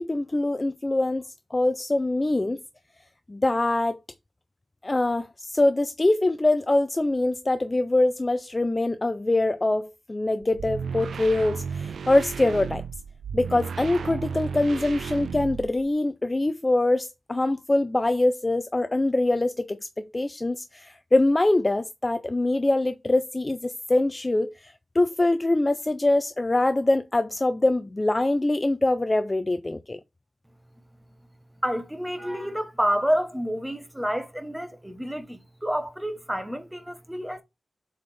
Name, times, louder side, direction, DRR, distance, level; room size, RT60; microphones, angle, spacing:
voice 1, 0.0-2.6 3.3-4.0 4.8-12.8 13.3-30.0, left 2 dB, 20° left, 0.4 m, -24 dB
sound 1, 10.4-15.9, right 6 dB, 90° right, 0.3 m, -34 dB
voice 2, 31.6-37.4, equal, 5° right, 0.9 m, -29 dB
7.4 x 4.2 x 3.2 m
wide cardioid pair, 175°, 0 cm